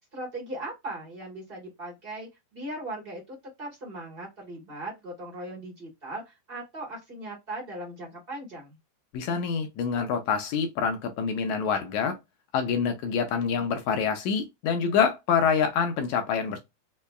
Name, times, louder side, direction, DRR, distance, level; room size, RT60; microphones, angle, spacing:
voice 1, 0.0-8.8, right 1 dB, 45° right, 0.6 m, -39 dB
voice 2, 9.1-12.2 12.5-16.6, left 6 dB, 80° left, 1.9 m, -26 dB
5.3 x 2.2 x 2.3 m
omnidirectional pair, 3.5 m